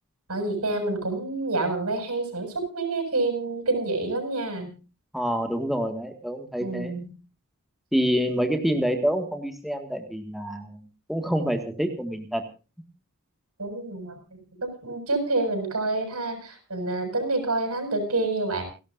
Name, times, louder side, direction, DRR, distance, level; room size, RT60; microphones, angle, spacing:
voice 1, 0.3-4.7 6.6-7.1 13.6-18.6, right 2 dB, 85° right, 6 dB, 7.6 m, -28 dB
voice 2, 5.1-6.9 7.9-10.7 11.1-12.4, equal, ahead, 5 dB, 1.8 m, -27 dB
30.0 x 12.0 x 2.6 m, 0.33 s
head